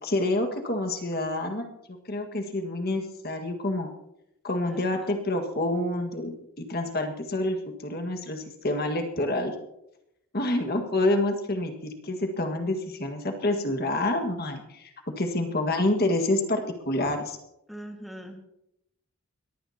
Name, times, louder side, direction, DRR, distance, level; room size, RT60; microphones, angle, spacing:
voice 1, 0.0-1.7 2.1-3.9 4.4-7.6 7.8-9.5 10.3-14.9 15.2-17.4, left 1 dB, 45° left, 4 dB, 1.7 m, -27 dB
voice 2, 4.7-5.2 17.0-17.1 17.7-18.4, equal, ahead, 1 dB, 1.8 m, -42 dB
21.5 x 16.0 x 2.9 m, 0.82 s
head